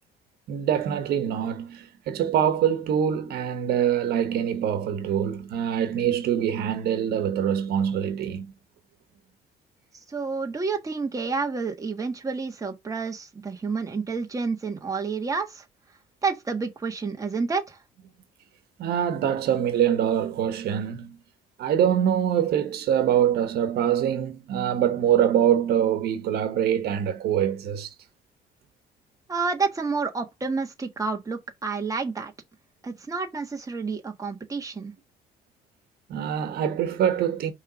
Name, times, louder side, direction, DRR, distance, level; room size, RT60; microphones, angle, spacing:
voice 1, 0.5-8.5 18.8-21.2 21.6-27.9 36.1-37.5, right 9 dB, 70° right, 1.4 m, -24 dB
voice 2, 10.1-15.6 16.2-17.8 29.3-32.3 32.8-34.9, right 4 dB, 20° right, 1.6 m, -29 dB
5.4 x 3.6 x 5.0 m
cardioid pair, 110°, 17 cm